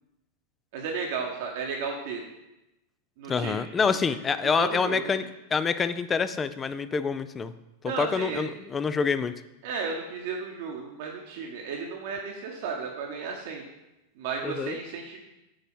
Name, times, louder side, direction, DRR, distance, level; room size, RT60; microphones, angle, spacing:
voice 1, 0.7-2.2 3.2-3.5 4.5-5.1 7.8-8.5 9.6-13.6 14.2-15.2, right 5 dB, 50° right, 1 dB, 1.0 m, -33 dB
voice 2, 3.3-5.2 5.5-7.5 8.0-9.3 14.4-14.8, left 5 dB, 20° left, 13 dB, 0.4 m, -26 dB
8.8 x 4.1 x 5.4 m, 0.94 s
figure-of-eight pair, 90°, 0 cm